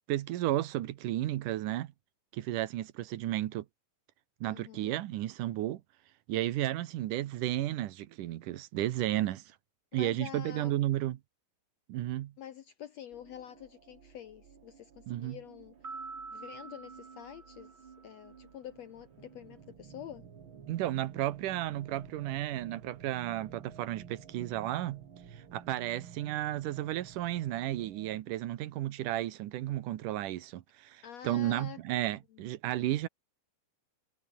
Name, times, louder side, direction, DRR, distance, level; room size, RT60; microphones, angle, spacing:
voice 1, 0.1-1.9 2.3-3.7 4.4-5.8 6.3-9.4 9.9-11.2 11.9-12.3 15.1-15.4 20.7-25.0 25.3-33.1, right 14 dB, 70° right, 2.4 m, -33 dB
voice 2, 4.4-4.9 9.9-10.7 12.4-15.7 16.3-20.3 31.0-31.8 32.3-32.4, left 10 dB, 75° left, 1.5 m, -47 dB
sound 1, 13.1-28.2, right 7 dB, 40° right, 2.1 m, -53 dB
sound 2, 15.8-18.4, right 4 dB, 25° right, 1.6 m, -46 dB
omnidirectional pair, 4.2 m